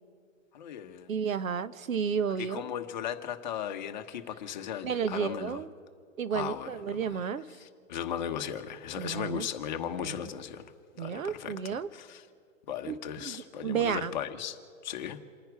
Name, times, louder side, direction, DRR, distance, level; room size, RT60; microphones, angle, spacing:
voice 1, 0.5-1.1 2.5-5.6 6.3-7.0 7.6-10.7 11.0-12.2 12.7-14.6 14.8-15.2, left 9 dB, 35° left, 6 dB, 1.1 m, -37 dB
voice 2, 1.1-2.6 4.8-5.7 6.2-7.5 9.0-9.5 9.8-10.3 11.0-11.9 12.8-14.1, right 7 dB, 75° right, 14 dB, 1.1 m, -32 dB
29.0 x 10.0 x 4.8 m, 2.3 s
hypercardioid pair, 160°, 40 cm